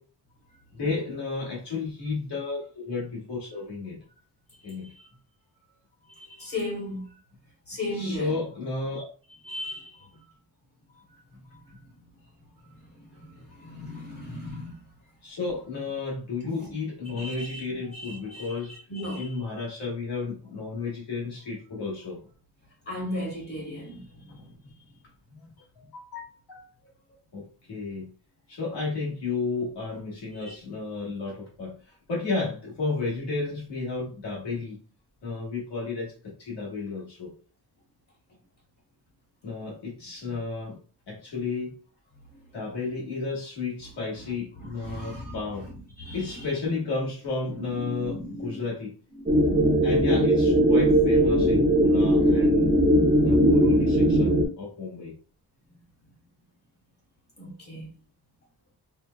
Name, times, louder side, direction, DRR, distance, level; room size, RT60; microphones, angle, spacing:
voice 1, 0.7-4.0 4.6-4.9 7.9-9.1 15.2-18.7 19.1-22.2 24.4-24.5 25.3-25.5 25.7-26.7 27.3-28.1 28.5-31.8 32.1-34.8 35.2-37.3 39.4-40.8 41.1-41.8 42.5-45.7 46.1-48.9 49.8-52.7 53.2-55.1, left 3 dB, 90° left, 1.4 m, -32 dB
voice 2, 6.1-7.1 7.7-8.3 9.4-10.3 11.5-11.9 12.6-14.8 16.6-16.7 17.1-19.4 22.9-24.7 30.3-30.6 44.6-45.7 46.0-46.5 47.6-48.6 49.2-49.9 57.4-57.9, left 1 dB, 35° left, 0.9 m, -37 dB
sound 1, 49.3-54.5, equal, 20° right, 0.7 m, -20 dB
4.4 x 2.2 x 2.2 m
wide cardioid pair, 155°, 40 cm